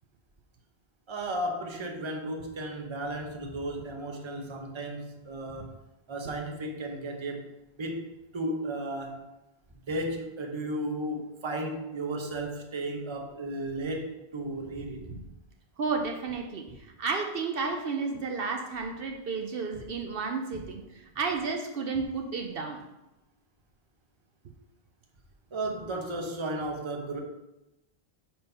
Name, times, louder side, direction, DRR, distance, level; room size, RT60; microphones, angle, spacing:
voice 1, 1.1-5.8 6.1-7.5 7.8-8.1 8.3-9.2 9.9-15.2 25.5-27.2, right 1 dB, 30° right, 2 dB, 0.8 m, -34 dB
voice 2, 15.8-22.8, right 4 dB, 65° right, 3 dB, 0.9 m, -32 dB
5.2 x 4.4 x 5.5 m, 0.96 s
omnidirectional pair, 1.1 m